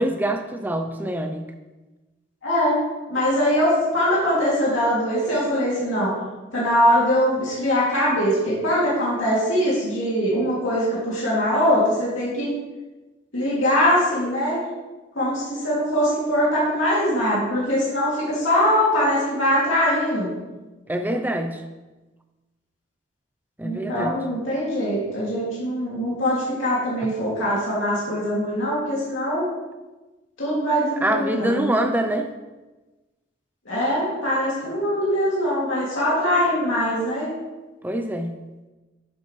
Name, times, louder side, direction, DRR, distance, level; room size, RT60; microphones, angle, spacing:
voice 1, 0.0-1.4 20.9-21.6 23.6-24.2 31.0-32.3 37.8-38.4, right 1 dB, 10° right, 6 dB, 0.5 m, -25 dB
voice 2, 2.4-2.8 3.1-6.1 6.5-12.5 13.3-14.6 15.1-20.3 23.6-29.4 30.4-31.7 33.6-37.3, equal, 80° left, -7 dB, 2.7 m, -22 dB
10.5 x 7.0 x 3.2 m, 1.2 s
head